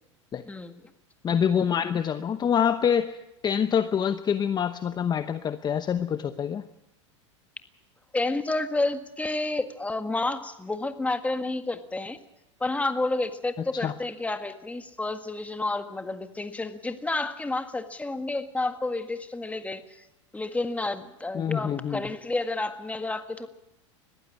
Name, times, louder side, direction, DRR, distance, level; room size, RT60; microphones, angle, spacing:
voice 1, 0.5-0.8 8.1-12.2 12.6-19.8 20.3-23.5, left 2 dB, 10° left, 8 dB, 1.7 m, -30 dB
voice 2, 1.2-3.2 3.4-6.6 13.7-13.9 21.3-22.0, left 8 dB, 25° left, 10 dB, 0.9 m, -26 dB
21.0 x 15.0 x 8.7 m, 0.87 s
hypercardioid pair, 105°, 16 cm